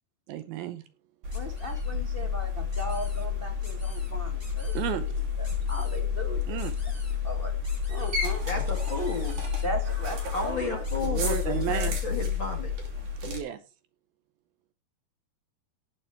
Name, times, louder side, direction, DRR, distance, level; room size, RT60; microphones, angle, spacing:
voice 1, 0.3-0.8 4.7-5.1 6.5-6.8 11.0-12.0 13.2-13.6, right 11 dB, 75° right, 11 dB, 2.5 m, -32 dB
sound 1, 1.2-13.4, left 6 dB, 50° right, 4.1 m, -30 dB
voice 2, 1.3-5.1 5.4-7.5 7.9-8.6 9.6-11.4, equal, 60° left, 2 dB, 0.5 m, -38 dB
sound 2, 1.3-2.0 2.7-3.3 3.6-4.1 4.4-4.9 5.4-6.0 6.6-7.2 7.6-8.3 8.7-9.7 10.8-11.0 11.3-12.1, equal, 5° right, 6.4 m, -51 dB
voice 3, 8.5-9.4 10.3-12.7, left 3 dB, 45° left, 1 dB, 1.7 m, -33 dB
18.5 x 7.7 x 3.3 m, 0.32 s
omnidirectional pair, 4.6 m